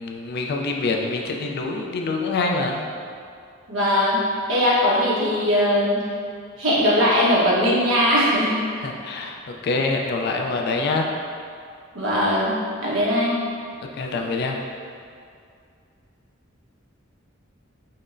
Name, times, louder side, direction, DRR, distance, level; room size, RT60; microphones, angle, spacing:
voice 1, 0.0-2.8 8.8-11.1 14.0-14.6, left 3 dB, 50° left, 1 dB, 0.3 m, -25 dB
voice 2, 3.7-4.2 4.5-6.1 6.6-8.7 11.9-13.4, left 1 dB, 70° right, -7 dB, 1.0 m, -20 dB
5.7 x 2.1 x 2.5 m, 2.3 s
head